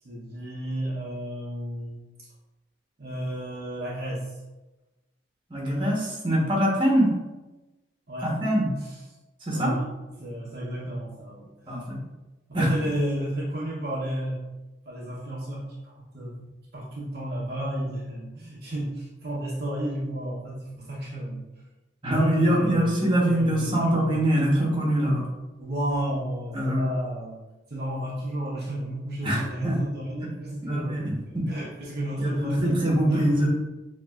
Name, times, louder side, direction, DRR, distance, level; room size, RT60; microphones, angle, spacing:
voice 1, 0.0-2.0 3.0-4.3 8.1-8.4 8.8-9.0 9.5-11.5 12.5-14.4 14.9-16.4 16.7-21.5 22.1-24.4 25.6-27.4 27.7-31.0 31.5-33.5, right 1 dB, 55° right, -5 dB, 0.9 m, -32 dB
voice 2, 5.5-7.1 8.2-8.7 9.5-9.7 11.7-12.0 12.5-12.7 22.0-25.2 26.5-26.8 29.2-29.7 30.6-31.5 32.2-33.5, right 1 dB, 25° right, -4 dB, 1.2 m, -23 dB
6.8 x 2.7 x 2.4 m, 1.1 s
head